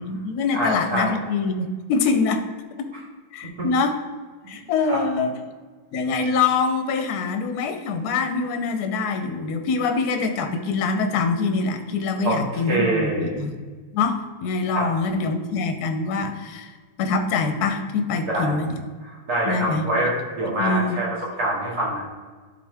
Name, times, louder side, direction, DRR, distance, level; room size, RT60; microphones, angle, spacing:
voice 1, 0.0-2.4 2.8-2.9 3.3-4.0 4.5-5.3 5.9-13.5 13.9-16.7 17.0-18.8 19.5-19.8 20.5-21.0, left 4 dB, 60° left, 6 dB, 1.2 m, -24 dB
voice 2, 0.5-1.1 3.6-3.7 4.4-4.6 4.9-5.0 12.2-13.3 14.7-14.9 18.3-18.6 19.0-21.1 21.4-22.0, right 1 dB, 45° right, -5 dB, 2.8 m, -25 dB
11.5 x 4.5 x 3.5 m, 1.4 s
omnidirectional pair, 2.3 m